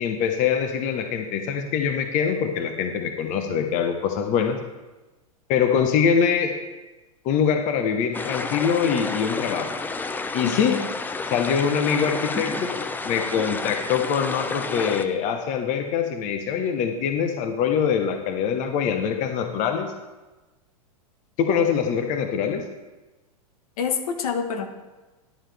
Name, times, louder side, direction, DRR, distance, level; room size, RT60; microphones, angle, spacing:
voice 1, 0.0-4.6 5.5-6.6 7.2-9.7 10.3-10.8 11.3-19.9 21.4-22.6, left 7 dB, 40° left, 6 dB, 0.9 m, -24 dB
sound 1, 8.1-15.0, left 3 dB, 10° left, 0.5 m, -30 dB
voice 2, 10.4-10.9 23.8-24.7, left 6 dB, 75° left, 7 dB, 1.2 m, -27 dB
11.0 x 7.3 x 3.4 m, 1.2 s
hypercardioid pair, 110°, 19 cm